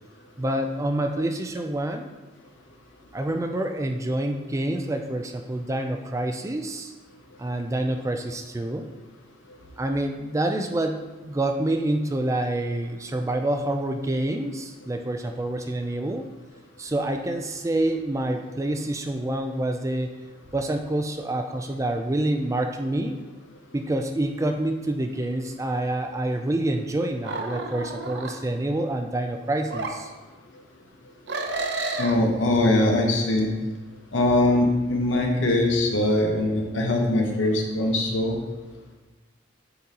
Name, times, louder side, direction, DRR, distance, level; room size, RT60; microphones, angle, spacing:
voice 1, 0.4-2.1 3.1-6.9 7.4-8.9 9.8-11.0 11.2-16.2 16.8-20.1 20.5-23.2 23.7-30.1, right 1 dB, 15° right, 5 dB, 0.3 m, -27 dB
sound 1, 27.2-28.3 29.7-29.9 31.3-32.2, right 3 dB, 60° right, 0.6 m, -30 dB
voice 2, 32.0-33.5 34.1-38.4, left 1 dB, 85° left, 1 dB, 1.0 m, -22 dB
8.4 x 3.9 x 2.9 m, 1.2 s
head